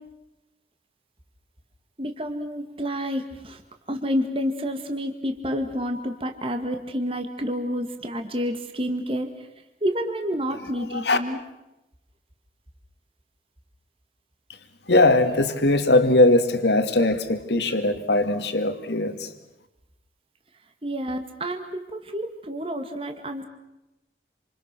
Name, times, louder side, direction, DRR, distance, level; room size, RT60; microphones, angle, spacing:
voice 1, 2.0-3.6 3.9-9.5 9.8-11.4 20.8-23.5, equal, 30° right, 5 dB, 2.0 m, -29 dB
voice 2, 14.9-19.3, left 2 dB, 70° left, 7 dB, 2.4 m, -20 dB
28.5 x 27.5 x 6.2 m, 0.93 s
head